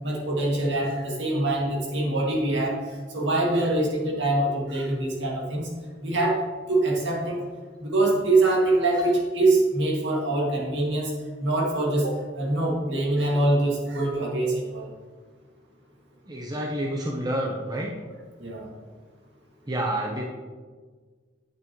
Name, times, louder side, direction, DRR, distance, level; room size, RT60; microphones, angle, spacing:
voice 1, 0.0-5.7 6.0-6.4 6.7-7.5 7.8-11.1 11.4-14.9 18.4-18.7, right 2 dB, 65° right, -3 dB, 2.2 m, -24 dB
voice 2, 16.3-17.9 19.7-20.2, right 1 dB, 20° right, -1 dB, 0.8 m, -28 dB
8.8 x 8.7 x 3.1 m, 1.5 s
head